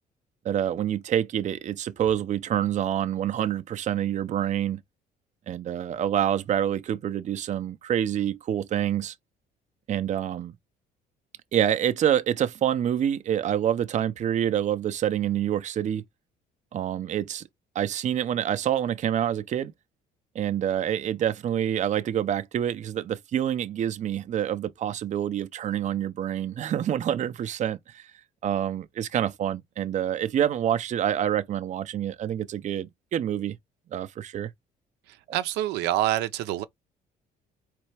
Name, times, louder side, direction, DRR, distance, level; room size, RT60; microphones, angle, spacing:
voice 1, 0.4-4.8 5.5-9.1 9.9-10.5 11.5-16.0 16.7-17.4 17.7-19.7 20.3-28.1 28.4-33.6 33.9-34.5, right 10 dB, 45° right, 0.6 m, -27 dB
voice 2, 35.1-36.6, right 14 dB, 90° right, 0.6 m, -27 dB
4.3 x 3.3 x 3.3 m
cardioid pair, 110°, 17 cm